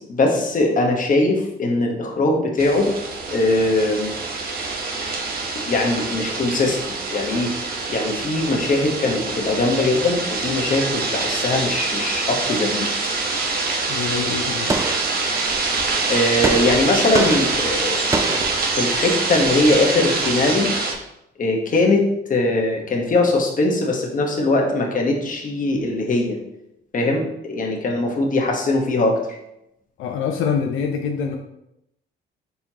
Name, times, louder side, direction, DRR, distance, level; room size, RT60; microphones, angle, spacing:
voice 1, 0.0-2.9 3.3-4.1 5.6-7.5 7.9-12.8 16.1-18.0 18.7-20.7 21.4-22.0 22.3-26.4 26.9-29.2, left 2 dB, 40° left, 0 dB, 1.1 m, -21 dB
sound 1, 2.6-20.9, right 3 dB, 50° right, 1.0 m, -25 dB
voice 2, 13.9-14.9 30.0-31.4, left 6 dB, 85° left, 2 dB, 0.5 m, -25 dB
Gunshot gunfire, 14.7-15.7 16.4-19.2, right 3 dB, 15° right, 0.3 m, -27 dB
4.3 x 4.2 x 2.8 m, 0.83 s
cardioid pair, 90°, 20 cm